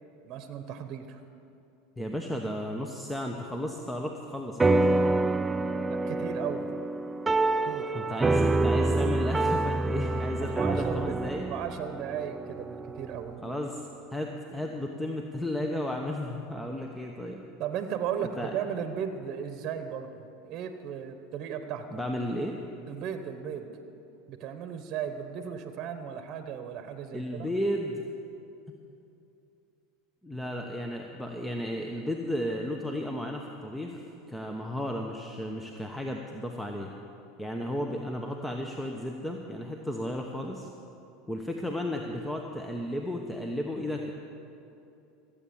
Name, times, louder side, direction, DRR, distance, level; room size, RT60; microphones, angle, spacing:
voice 1, 0.2-1.2 5.9-6.7 7.6-7.9 10.4-13.7 14.5-14.6 17.6-21.9 22.9-23.7 24.3-27.5, right 8 dB, 50° right, 8 dB, 1.0 m, -36 dB
voice 2, 2.0-4.8 7.9-11.4 13.4-17.4 18.4-18.5 21.9-22.6 27.1-28.0 30.2-34.0 34.3-36.9 37.4-40.7 41.3-44.1, left 1 dB, 5° left, 2 dB, 1.0 m, -34 dB
sound 1, 4.6-13.3, right 2 dB, 15° right, 0.4 m, -27 dB
15.5 x 8.5 x 7.2 m, 2.7 s
hypercardioid pair, 95°, 0 cm